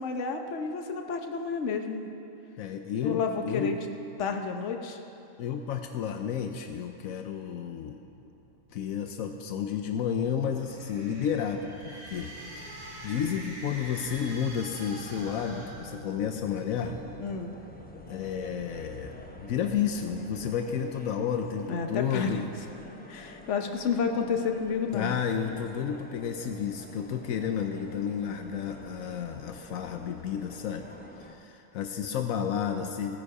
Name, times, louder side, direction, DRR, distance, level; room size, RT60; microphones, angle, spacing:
voice 1, 0.0-2.1 3.0-3.8 4.2-5.0 17.2-17.5 21.7-22.4 23.1-25.1, left 5 dB, 60° left, 4 dB, 1.2 m, -30 dB
voice 2, 2.6-3.8 5.4-8.0 8.7-17.0 18.1-22.5 24.9-30.8 31.2-33.2, left 8 dB, 80° left, 5 dB, 1.1 m, -31 dB
sound 1, 8.0-20.5, equal, 25° right, 1.4 m, -51 dB
sound 2, 10.5-16.5, right 1 dB, 90° right, 3.5 m, -45 dB
sound 3, 16.7-31.3, left 1 dB, 10° left, 0.7 m, -49 dB
16.0 x 9.9 x 4.9 m, 2.8 s
omnidirectional pair, 1.4 m